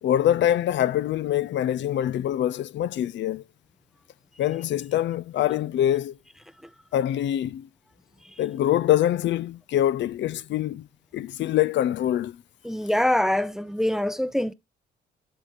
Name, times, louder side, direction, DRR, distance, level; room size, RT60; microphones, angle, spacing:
voice 1, 0.0-3.4 4.4-6.2 6.9-7.7 8.4-10.9 11.1-12.4, left 11 dB, 65° left, 0.5 m, -24 dB
voice 2, 12.6-14.5, left 1 dB, ahead, 0.5 m, -24 dB
12.5 x 4.3 x 4.6 m
cardioid pair, 90°, 20 cm